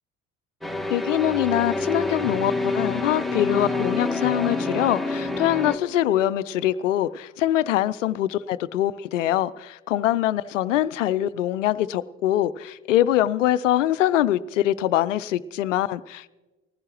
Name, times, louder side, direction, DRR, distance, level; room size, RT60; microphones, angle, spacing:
sound 1, 0.6-5.8, left 2 dB, ahead, 1.1 m, -27 dB
voice 1, 0.9-16.3, left 13 dB, 80° left, 0.5 m, -23 dB
sound 2, 2.0-8.3, right 3 dB, 50° right, 5.8 m, -48 dB
20.0 x 15.0 x 3.0 m
figure-of-eight pair, 55°, 37 cm